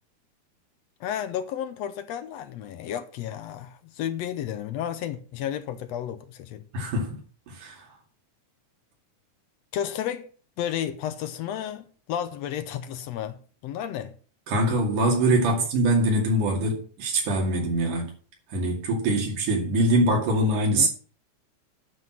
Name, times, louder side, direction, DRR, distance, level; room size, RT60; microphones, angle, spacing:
voice 1, 1.0-6.6 9.7-10.3 10.6-14.1 19.1-19.2 20.8-20.9, left 10 dB, 70° left, 1.7 m, -32 dB
voice 2, 6.7-7.2 7.5-7.9 14.5-18.1 18.5-20.9, right 1 dB, 90° right, 3.9 m, -23 dB
9.3 x 6.0 x 7.5 m
omnidirectional pair, 3.5 m